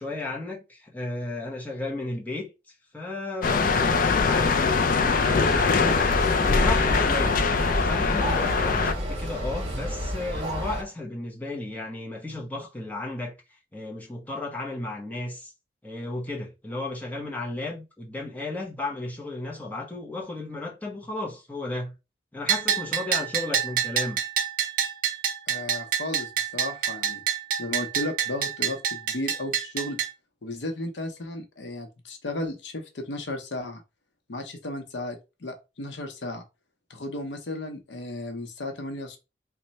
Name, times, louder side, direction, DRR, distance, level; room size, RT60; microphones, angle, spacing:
voice 1, 0.0-2.5 2.9-6.0 6.5-7.4 7.8-13.3 13.7-15.5 15.8-21.9 22.3-24.2, left 2 dB, 10° left, 0.8 m, -34 dB
sound 1, 3.4-8.9, left 4 dB, 50° left, 0.4 m, -22 dB
sound 2, 5.2-10.8, equal, 35° right, 1.5 m, -31 dB
Bell, 22.5-30.1, right 8 dB, 50° right, 0.6 m, -27 dB
voice 2, 25.5-27.2 27.6-30.0 30.4-33.8 34.3-36.4 36.9-39.2, left 1 dB, 80° left, 0.8 m, -34 dB
3.1 x 2.2 x 4.0 m
head